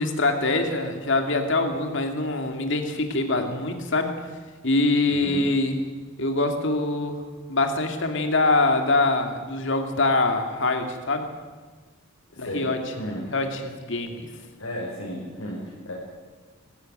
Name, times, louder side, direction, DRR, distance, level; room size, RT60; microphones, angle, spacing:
voice 1, 0.0-4.2 4.6-5.8 6.2-7.2 7.5-11.3 12.4-12.8 13.3-14.3, left 2 dB, 60° left, 5 dB, 2.4 m, -24 dB
voice 2, 5.1-5.5 12.3-13.3 14.0-14.2 14.6-15.9, equal, 85° left, -4 dB, 4.9 m, -34 dB
22.0 x 13.0 x 9.1 m, 1.4 s
head